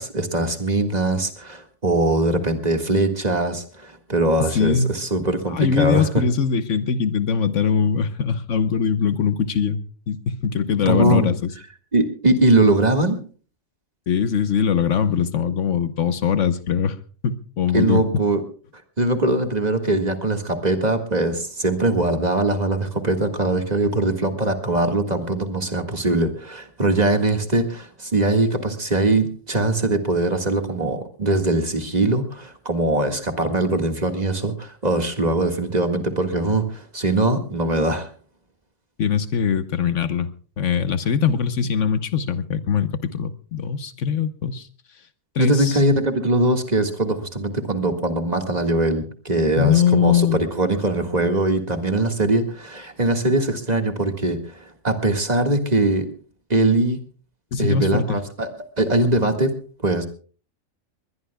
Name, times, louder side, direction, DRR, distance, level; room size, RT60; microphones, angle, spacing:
voice 1, 0.0-6.2 10.9-11.3 11.9-13.2 17.7-18.4 19.0-38.1 45.4-56.1 56.5-57.0 57.6-58.5 58.8-59.5 59.8-60.1, right 2 dB, 30° right, 6 dB, 1.9 m, -21 dB
voice 2, 4.4-5.0 5.5-11.5 14.1-17.0 17.2-18.0 39.0-40.3 40.6-44.7 45.3-45.8 49.6-50.4 57.5-58.2, left 7 dB, 70° left, 11 dB, 1.3 m, -21 dB
21.5 x 21.0 x 2.3 m, 0.40 s
omnidirectional pair, 1.4 m